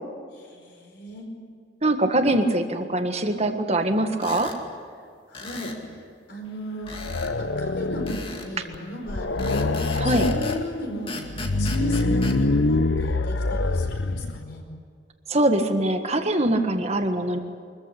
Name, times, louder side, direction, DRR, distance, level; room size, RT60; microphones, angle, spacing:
voice 1, 0.3-1.3 5.3-5.8 6.3-6.9 7.2-14.6, equal, 60° left, 2 dB, 4.7 m, -36 dB
voice 2, 1.8-4.5 10.0-10.3 15.3-17.4, right 1 dB, 35° right, 6 dB, 1.6 m, -23 dB
sound 1, 4.2-4.6 5.3-5.8 6.9-7.3 8.1-8.5 9.4-10.6 11.1-12.4, left 3 dB, 30° left, 2.2 m, -37 dB
sound 2, 6.9-8.4 8.7-8.8 9.1-10.6 11.3-14.4, left 2 dB, 75° left, 0.9 m, -25 dB
24.0 x 14.5 x 9.9 m, 2.1 s
head